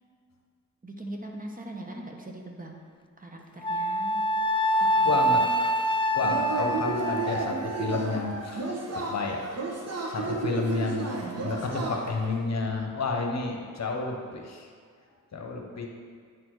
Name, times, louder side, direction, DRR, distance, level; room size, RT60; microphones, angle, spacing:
voice 1, 0.8-2.7 3.2-4.2 4.8-5.5, right 1 dB, 25° right, 1 dB, 1.1 m, -41 dB
Wind instrument woodwind instrument, 3.6-8.0, equal, 15° left, 0.3 m, -26 dB
voice 2, 5.0-5.4 6.1-9.4 10.1-14.7 15.3-15.9, left 3 dB, 55° left, 1 dB, 1.1 m, -31 dB
Yell / Cheering, 6.2-12.3, right 3 dB, 50° right, 1.3 m, -32 dB
9.4 x 4.3 x 4.7 m, 2.1 s
cardioid pair, 80°, 32 cm